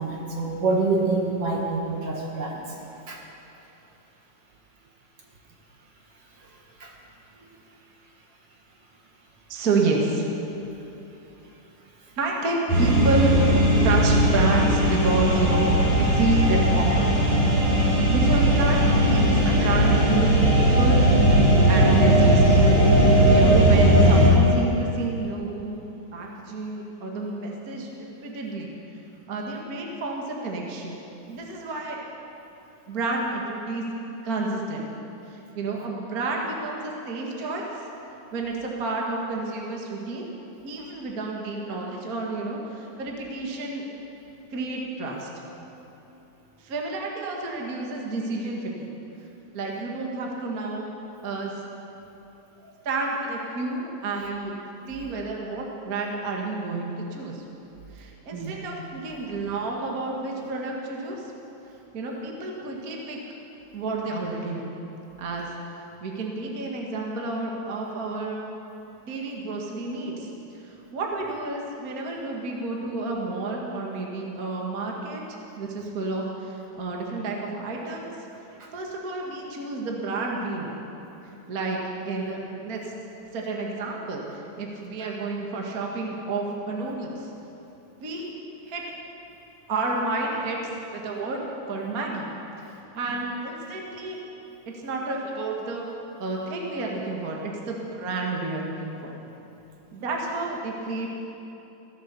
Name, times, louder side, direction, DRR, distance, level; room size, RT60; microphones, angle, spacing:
voice 1, 0.0-2.6 3.1-3.2 6.8-6.9 19.4-19.5 58.3-58.6, right 3 dB, 55° right, -1 dB, 2.5 m, -26 dB
voice 2, 9.5-10.2 12.2-13.4 13.8-17.1 18.1-18.8 19.0-21.0 21.7-22.4 22.8-25.8 26.1-28.7 29.3-30.9 31.3-32.0 32.9-33.8 34.2-34.9 35.3-37.7 38.3-40.3 40.6-43.9 44.5-45.3 46.6-48.9 49.5-50.8 51.2-51.5 52.9-54.6 54.9-57.4 57.9-61.3 61.9-63.2 63.7-64.7 65.2-65.5 66.0-68.4 69.1-70.3 70.6-75.2 75.6-78.1 78.7-80.8 81.5-81.8 82.0-82.9 83.3-87.3 88.0-88.4 88.6-88.8 89.7-90.6 90.9-92.3 92.9-94.2 94.7-95.8 96.2-99.2 99.9-101.2, right 3 dB, 35° right, -1 dB, 1.7 m, -30 dB
sound 1, 12.7-24.3, right 1 dB, 85° right, 5.7 m, -18 dB
16.5 x 12.5 x 6.9 m, 3.0 s
omnidirectional pair, 3.3 m